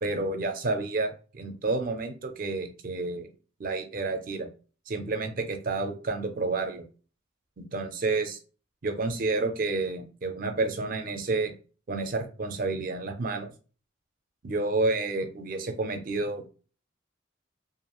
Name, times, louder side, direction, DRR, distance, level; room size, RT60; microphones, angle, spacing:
voice 1, 0.0-3.3 3.6-4.5 4.9-6.8 7.6-8.4 8.8-11.5 11.9-13.5 14.4-16.5, right 3 dB, 45° right, 6 dB, 0.4 m, -30 dB
2.5 x 2.3 x 2.9 m, 0.37 s
head